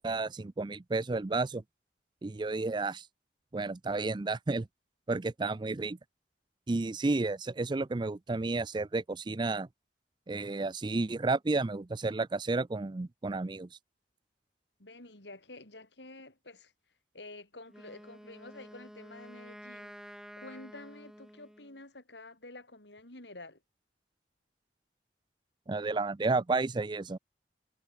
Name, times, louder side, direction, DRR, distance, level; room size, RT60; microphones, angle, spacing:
voice 1, 0.0-1.6 2.2-3.1 3.5-4.7 5.1-6.0 6.7-9.7 10.3-13.7 25.7-27.2, right 3 dB, 25° right, 0.4 m, -31 dB
voice 2, 14.8-16.7 17.1-23.6, left 2 dB, 80° left, 5.4 m, -49 dB
Wind instrument woodwind instrument, 17.7-21.8, equal, 5° right, 2.9 m, -50 dB
head